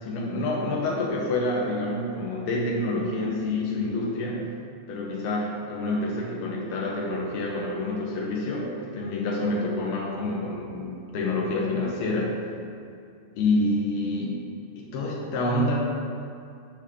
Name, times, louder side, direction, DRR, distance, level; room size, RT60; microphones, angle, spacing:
voice 1, 0.0-4.5 4.9-12.4 13.3-14.5 14.8-15.7, left 2 dB, 75° left, -2 dB, 2.4 m, -27 dB
10.0 x 3.6 x 6.8 m, 2.4 s
omnidirectional pair, 5.2 m